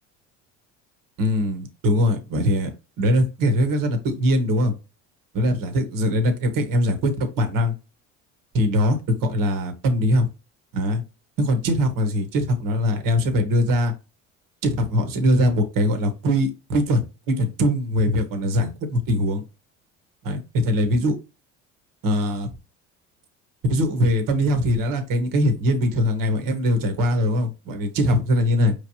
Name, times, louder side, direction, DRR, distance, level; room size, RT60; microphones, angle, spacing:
voice 1, 1.2-2.7 3.0-4.7 5.3-7.7 8.5-10.3 10.7-11.0 11.4-13.9 14.6-19.4 20.2-21.2 22.0-22.5 23.7-28.7, equal, 55° right, 6 dB, 1.3 m, -21 dB
4.9 x 3.2 x 2.8 m, 0.28 s
hypercardioid pair, 75°, 38 cm